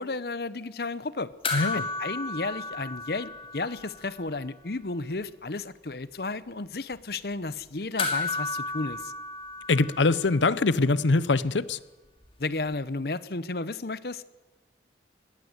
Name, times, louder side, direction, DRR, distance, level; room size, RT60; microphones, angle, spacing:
voice 1, 0.0-1.3 1.7-9.1 12.4-14.2, left 3 dB, 55° left, 0.9 m, -33 dB
sound 1, 1.4-4.1 4.4-4.5 8.0-10.6 12.7-12.8, left 3 dB, 30° left, 3.0 m, -33 dB
voice 2, 1.5-1.9 9.7-11.8, left 3 dB, 90° left, 0.8 m, -23 dB
20.5 x 17.5 x 8.0 m
head